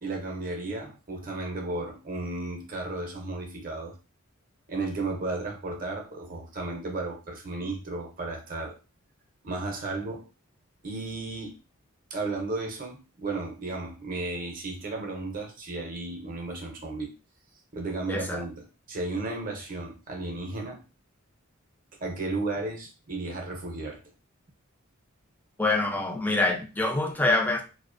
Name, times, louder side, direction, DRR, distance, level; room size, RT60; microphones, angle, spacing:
voice 1, 0.0-4.0 4.7-8.7 9.4-10.3 10.8-11.5 12.1-17.1 17.7-20.8 22.0-24.0, right 2 dB, 40° right, 0.6 m, -34 dB
voice 2, 18.1-18.4 25.6-27.6, left 2 dB, 10° left, 0.3 m, -25 dB
2.5 x 2.1 x 2.4 m
head